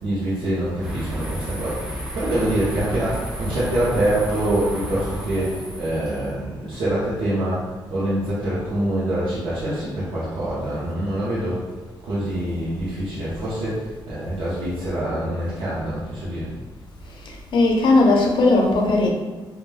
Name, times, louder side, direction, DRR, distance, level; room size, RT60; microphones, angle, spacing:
voice 1, 0.0-11.6 12.0-16.5, right 1 dB, 90° right, -9 dB, 0.6 m, -25 dB
sound 1, 0.8-6.3, right 1 dB, 10° right, 0.5 m, -31 dB
voice 2, 17.2-19.1, left 2 dB, 70° left, 0 dB, 0.5 m, -18 dB
2.2 x 2.1 x 3.1 m, 1.2 s
wide cardioid pair, 145°, 8 cm